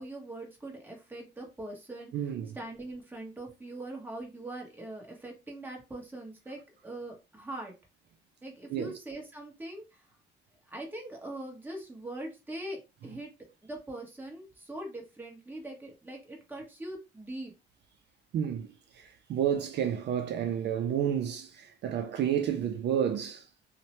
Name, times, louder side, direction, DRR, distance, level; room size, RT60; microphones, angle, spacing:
voice 1, 0.0-7.7 8.4-10.0 10.7-13.3 13.6-17.5, right 1 dB, 10° right, 1.1 m, -42 dB
voice 2, 2.1-2.6 8.7-8.9 18.3-23.5, right 9 dB, 60° right, 0.4 m, -31 dB
2.7 x 2.1 x 2.9 m
cardioid pair, 90°, 20 cm